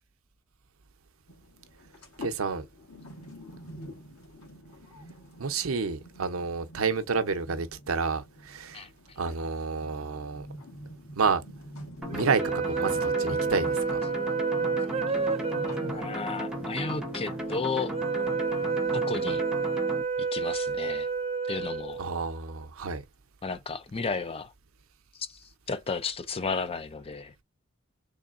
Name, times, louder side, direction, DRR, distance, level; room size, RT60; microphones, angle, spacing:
sound 1, 1.3-19.4, equal, 85° left, 2.1 m, -47 dB
voice 1, 2.2-2.7 5.4-8.8 9.2-10.5 11.2-11.4 12.1-14.0 22.0-23.0, right 5 dB, 75° right, 0.6 m, -30 dB
sound 2, 12.0-20.0, right 1 dB, 5° right, 0.9 m, -35 dB
sound 3, 12.1-22.5, right 4 dB, 30° right, 0.5 m, -30 dB
voice 2, 15.7-17.9 18.9-19.4 20.2-21.1 21.5-22.0 23.4-24.5 25.1-27.3, left 4 dB, 25° left, 0.4 m, -33 dB
3.7 x 3.1 x 2.4 m
head